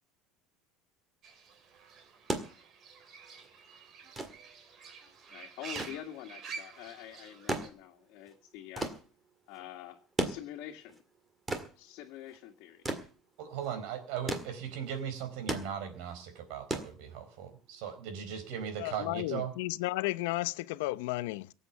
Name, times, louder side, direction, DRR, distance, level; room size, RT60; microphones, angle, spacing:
Fowl / Bird, 1.2-7.7, right 5 dB, 30° right, 2.5 m, -48 dB
sound 1, 2.1-17.6 18.8-18.9, right 2 dB, 10° right, 1.8 m, -39 dB
voice 1, 5.3-8.9 9.5-10.0 10.2-11.0 11.8-12.8, left 12 dB, 55° left, 2.1 m, -46 dB
voice 2, 13.4-19.5, right 8 dB, 60° right, 4.3 m, -38 dB
voice 3, 18.8-21.5, left 19 dB, 80° left, 0.7 m, -33 dB
18.0 x 8.3 x 7.1 m
cardioid pair, 170°, 0 cm